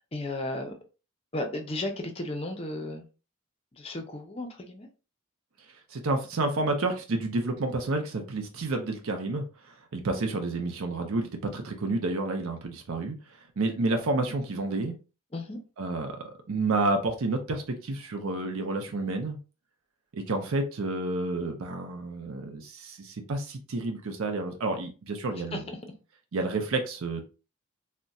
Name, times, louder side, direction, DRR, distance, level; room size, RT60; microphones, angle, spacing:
voice 1, 0.1-0.7 1.3-3.0 3.7-4.9 15.3-15.6 25.5-25.6, left 2 dB, 25° left, 5 dB, 0.5 m, -34 dB
voice 2, 5.9-14.9 15.8-19.4 20.1-25.6 26.3-27.2, right 2 dB, 80° right, 4 dB, 0.6 m, -30 dB
3.9 x 2.1 x 2.3 m, 0.32 s
head